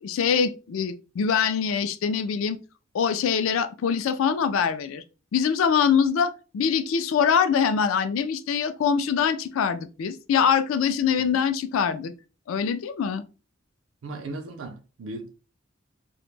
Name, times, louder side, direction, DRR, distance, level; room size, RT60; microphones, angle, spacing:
voice 1, 0.0-2.6 2.9-5.0 5.3-12.1 12.5-13.2, left 7 dB, 80° left, 0.3 m, -24 dB
voice 2, 14.0-15.3, right 2 dB, 70° right, 0.4 m, -36 dB
2.1 x 2.0 x 3.1 m
head